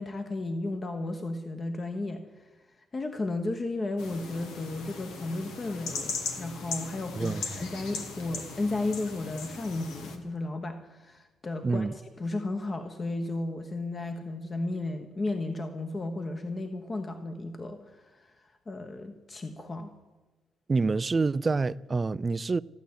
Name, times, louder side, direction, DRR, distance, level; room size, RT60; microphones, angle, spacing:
voice 1, 0.0-2.5 2.9-19.9, left 2 dB, 30° left, 1.2 m, -34 dB
sound 1, 4.0-10.2, left 4 dB, 90° left, 1.9 m, -38 dB
voice 2, 11.6-11.9 20.7-22.6, right 4 dB, 30° right, 0.4 m, -27 dB
15.5 x 9.3 x 8.5 m
cardioid pair, 90°, 0 cm